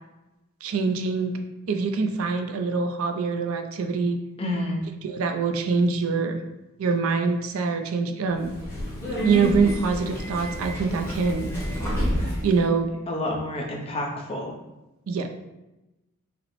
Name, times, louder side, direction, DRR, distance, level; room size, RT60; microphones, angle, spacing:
voice 1, 0.6-1.3 1.7-4.2 5.0-6.4 6.8-8.5 9.2-11.5 12.4-12.9 15.1-15.3, right 4 dB, 70° right, 6 dB, 0.4 m, -24 dB
voice 2, 4.4-4.8 13.1-14.5, left 1 dB, 25° left, 0 dB, 0.6 m, -29 dB
Subway metro underground, 8.3-12.6, equal, 10° left, 1.1 m, -29 dB
5.1 x 2.0 x 3.0 m, 1.0 s
head